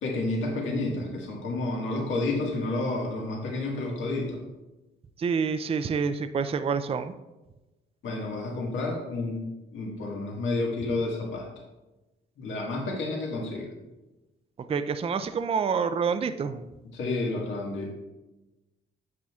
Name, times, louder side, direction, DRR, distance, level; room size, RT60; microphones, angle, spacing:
voice 1, 0.0-4.4 8.0-9.4 9.7-11.5 12.4-13.7 16.9-17.9, left 2 dB, 75° left, -1 dB, 1.7 m, -30 dB
voice 2, 5.2-7.1 14.7-16.7, right 6 dB, 30° right, 10 dB, 0.4 m, -27 dB
9.2 x 7.4 x 2.4 m, 1.0 s
cardioid pair, 90°, 20 cm